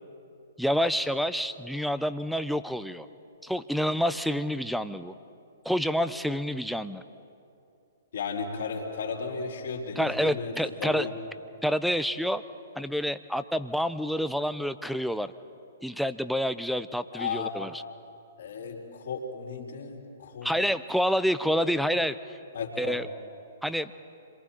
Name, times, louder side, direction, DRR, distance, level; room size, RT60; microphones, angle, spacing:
voice 1, 0.6-3.1 3.4-5.1 5.6-7.0 10.0-11.1 11.6-12.4 12.8-15.3 15.8-17.8 20.4-22.2 22.8-23.1 23.6-23.9, equal, ahead, 13 dB, 0.7 m, -28 dB
voice 2, 8.1-10.5 10.8-11.1 17.1-17.6 18.4-20.6 22.5-23.0, left 5 dB, 60° left, 0 dB, 3.9 m, -34 dB
29.5 x 23.0 x 4.5 m, 2.6 s
figure-of-eight pair, 115°, 0 cm